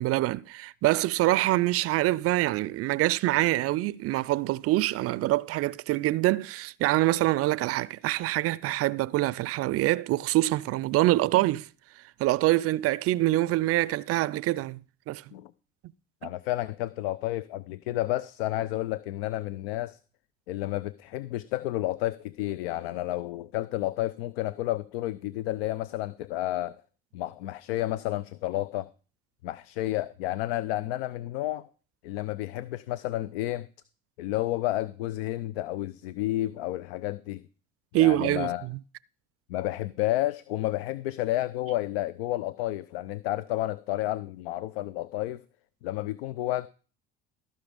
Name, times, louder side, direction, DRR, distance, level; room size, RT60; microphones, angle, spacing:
voice 1, 0.0-11.7 12.2-14.8 15.1-15.2 37.9-38.8, right 17 dB, 50° right, 0.4 m, -25 dB
voice 2, 16.2-20.0 20.5-26.8 27.1-28.9 29.4-31.7 32.0-33.7 34.2-37.4 37.9-38.7 39.5-45.4 45.8-46.7, left 15 dB, 80° left, 0.4 m, -31 dB
14.5 x 5.6 x 5.0 m
hypercardioid pair, 60°, 30 cm